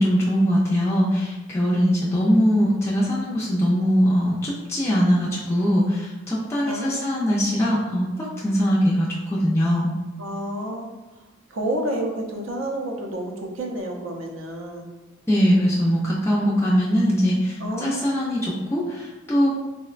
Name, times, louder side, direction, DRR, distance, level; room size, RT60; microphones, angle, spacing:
voice 1, 0.0-9.9 15.3-19.5, equal, 15° left, -6 dB, 0.3 m, -21 dB
voice 2, 6.6-7.1 10.2-10.9 11.5-14.9 17.6-18.0, right 1 dB, 75° right, 1 dB, 0.5 m, -29 dB
3.6 x 2.1 x 2.4 m, 1.1 s
head